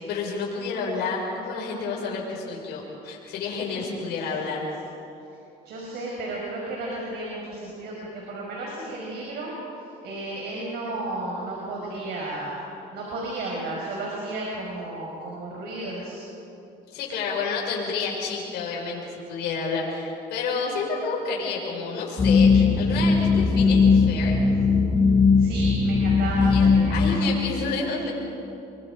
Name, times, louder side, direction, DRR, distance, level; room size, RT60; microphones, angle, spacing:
voice 1, 0.1-4.7 16.9-24.4 26.4-28.1, left 4 dB, 80° left, -2 dB, 5.8 m, -30 dB
voice 2, 5.6-9.6 10.0-12.6 12.9-16.2 25.4-27.0, right 2 dB, 75° right, -3 dB, 5.3 m, -33 dB
sound 1, 22.2-27.2, left 4 dB, 30° left, 3.6 m, -19 dB
27.5 x 23.5 x 5.0 m, 2.8 s
cardioid pair, 110°, 17 cm